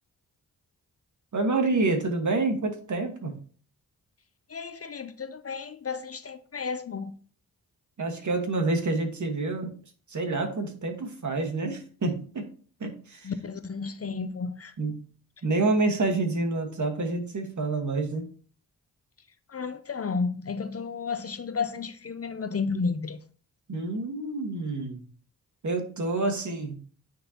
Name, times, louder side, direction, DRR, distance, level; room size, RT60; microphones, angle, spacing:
voice 1, 1.3-3.4 8.0-9.7 10.1-12.4 12.8-13.3 14.8-15.1 15.4-18.3 23.7-25.0 25.6-26.8, right 3 dB, 50° right, 1.6 m, -28 dB
voice 2, 4.5-7.1 13.2-14.7 19.5-23.2, left 5 dB, 40° left, 0.6 m, -32 dB
9.1 x 3.9 x 2.9 m
cardioid pair, 55°, 37 cm